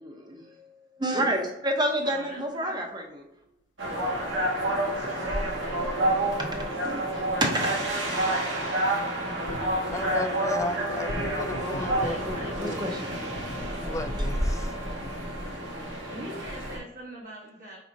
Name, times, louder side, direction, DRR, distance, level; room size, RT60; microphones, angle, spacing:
voice 1, 0.0-3.3 6.4-7.1 7.4-7.8 12.6-13.0, right 1 dB, 25° right, 2 dB, 0.8 m, -29 dB
voice 2, 2.0-2.8 5.2-5.9 11.8-13.3 16.1-17.8, right 1 dB, 50° right, -5 dB, 1.2 m, -43 dB
sound 1, 3.8-16.8, right 1 dB, 90° right, 1.4 m, -29 dB
voice 3, 4.9-5.2 9.9-12.9 13.8-14.7, left 2 dB, 15° left, 8 dB, 0.3 m, -35 dB
sound 2, 8.1-8.4 9.2-15.5, left 1 dB, 85° left, 0.5 m, -41 dB
4.9 x 4.1 x 2.7 m, 0.84 s
head